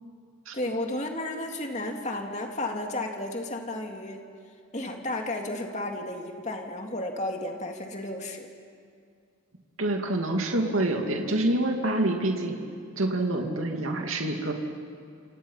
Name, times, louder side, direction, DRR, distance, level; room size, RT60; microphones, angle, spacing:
voice 1, 0.5-4.2 4.7-8.5, left 1 dB, 35° left, 2 dB, 2.4 m, -33 dB
voice 2, 9.8-12.6 13.0-14.5, right 1 dB, 80° right, 2 dB, 2.5 m, -26 dB
28.5 x 27.5 x 5.7 m, 2.3 s
head